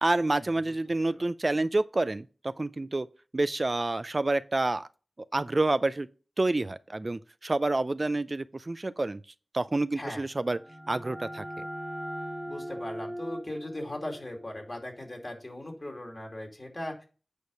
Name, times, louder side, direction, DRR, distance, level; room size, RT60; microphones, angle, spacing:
voice 1, 0.0-3.1 3.3-4.9 5.3-6.1 6.4-9.2 9.5-10.6 10.9-11.7, right 2 dB, 45° right, 0.4 m, -28 dB
sound 1, 10.3-15.9, equal, ahead, 1.4 m, -41 dB
voice 2, 12.5-17.0, left 1 dB, 45° left, 2.7 m, -39 dB
8.3 x 4.9 x 5.3 m
cardioid pair, 45°, 0 cm